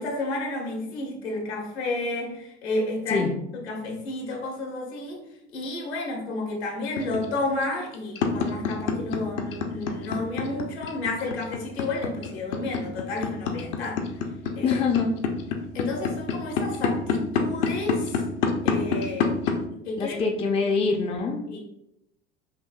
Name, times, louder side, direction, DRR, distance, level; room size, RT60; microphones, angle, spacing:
voice 1, 0.0-3.2 3.5-5.2 5.5-14.0 14.6-14.8 15.7-18.2 18.6-19.3 19.8-20.2 20.6-20.7 21.5-21.6, left 2 dB, 75° left, 1 dB, 1.1 m, -31 dB
sound 1, 7.0-19.6, left 6 dB, 55° left, 0.7 m, -26 dB
voice 2, 14.6-15.1 20.0-21.4, left 4 dB, 20° left, 3 dB, 0.4 m, -24 dB
5.4 x 2.6 x 2.4 m, 0.82 s
figure-of-eight pair, 70°, 33 cm